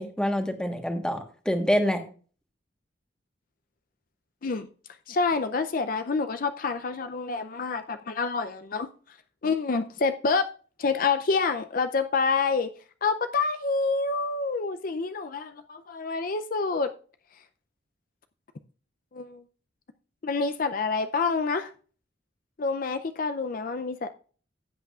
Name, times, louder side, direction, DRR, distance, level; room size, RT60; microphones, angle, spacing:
voice 1, 0.0-2.0, equal, 5° left, 1.3 m, -26 dB
voice 2, 5.1-8.9 9.4-10.5 10.8-12.7 13.0-16.9 19.1-19.4 20.2-21.7 22.6-24.1, left 4 dB, 50° left, 0.5 m, -27 dB
15.5 x 8.2 x 2.4 m
head